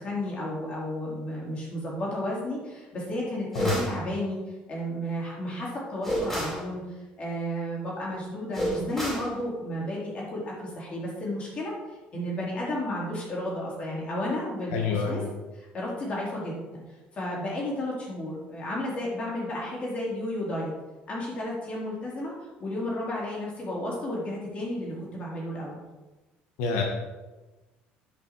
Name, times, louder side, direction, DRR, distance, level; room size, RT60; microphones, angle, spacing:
voice 1, 0.0-4.4 4.7-6.8 7.2-15.2 15.5-16.8 17.1-20.7 21.1-22.3 22.6-25.8, left 1 dB, 35° left, -4 dB, 3.5 m, -32 dB
sound 1, 3.5-4.0 6.0-6.6 8.5-9.3, equal, 5° left, 2.9 m, -29 dB
voice 2, 14.7-15.3 26.6-26.8, left 5 dB, 90° left, 1 dB, 1.5 m, -27 dB
10.5 x 5.8 x 4.6 m, 1.2 s
cardioid pair, 145°, 4 cm